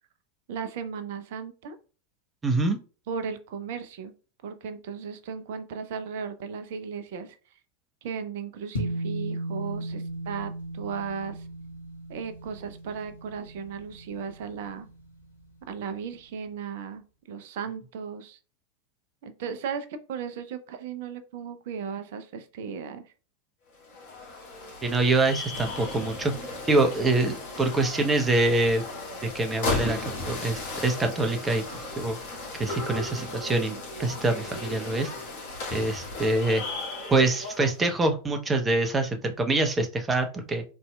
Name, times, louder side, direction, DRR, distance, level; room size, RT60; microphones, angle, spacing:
voice 1, 0.5-1.8 3.1-4.1 4.4-7.4 8.0-11.5 12.1-14.9 15.7-18.4 19.2-23.1, right 6 dB, 50° right, 9 dB, 0.6 m, -36 dB
voice 2, 2.4-2.8 24.8-26.3 26.7-28.8 29.2-31.6 32.0-32.2 32.6-35.1 35.7-36.6 37.1-40.6, right 2 dB, 15° right, 5 dB, 0.8 m, -25 dB
sound 1, 8.7-15.3, right 1 dB, 75° left, 1.2 m, -36 dB
sound 2, 23.7-37.8, left 2 dB, 50° left, 2.1 m, -35 dB
4.1 x 3.5 x 2.2 m, 0.36 s
figure-of-eight pair, 90°, 0 cm